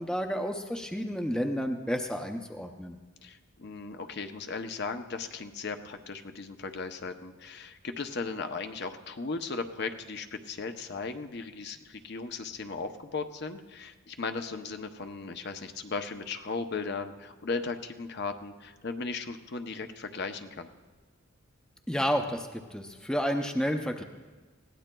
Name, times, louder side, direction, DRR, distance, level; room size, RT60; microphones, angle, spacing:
voice 1, 0.0-3.0 21.9-24.0, equal, 5° left, 4 dB, 0.5 m, -31 dB
voice 2, 3.2-20.7, left 4 dB, 50° left, 7 dB, 0.6 m, -37 dB
21.0 x 16.5 x 2.2 m, 1.3 s
head